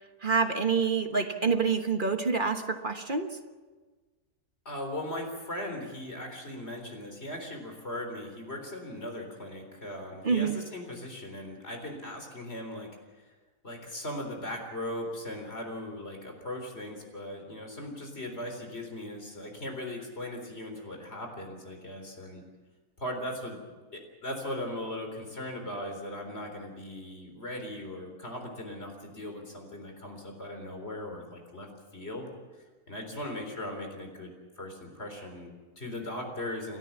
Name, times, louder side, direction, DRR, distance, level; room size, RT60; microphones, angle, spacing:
voice 1, 0.2-3.3 10.2-10.6, right 5 dB, 35° right, 6 dB, 1.3 m, -27 dB
voice 2, 4.7-12.9 13.2-13.3 13.6-22.4 23.0-23.6 23.9-31.7 31.9-32.3 32.9-36.8, left 1 dB, 40° left, 3 dB, 4.1 m, -38 dB
29.0 x 13.0 x 7.2 m, 1.3 s
omnidirectional pair, 1.6 m